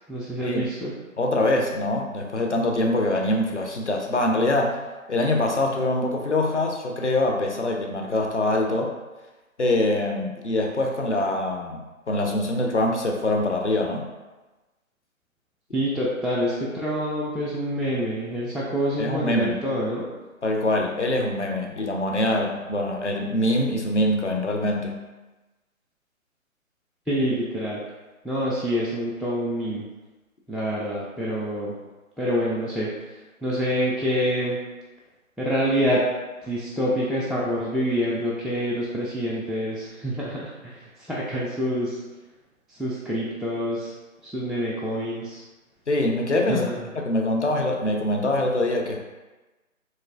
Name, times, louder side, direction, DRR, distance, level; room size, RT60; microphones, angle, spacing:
voice 1, 0.1-0.9 15.7-20.1 27.1-27.8 28.2-29.8 30.5-31.8 32.2-34.6 35.4-36.0 36.4-42.0 42.7-43.9 44.2-45.4 46.5-46.8, equal, ahead, -6 dB, 0.3 m, -26 dB
voice 2, 1.2-4.8 5.1-8.9 9.6-14.1 19.0-19.6 20.4-25.0 45.9-46.7 47.1-49.0, left 1 dB, 55° left, 1 dB, 0.5 m, -24 dB
3.2 x 2.9 x 2.4 m, 1.2 s
figure-of-eight pair, 170°, 43 cm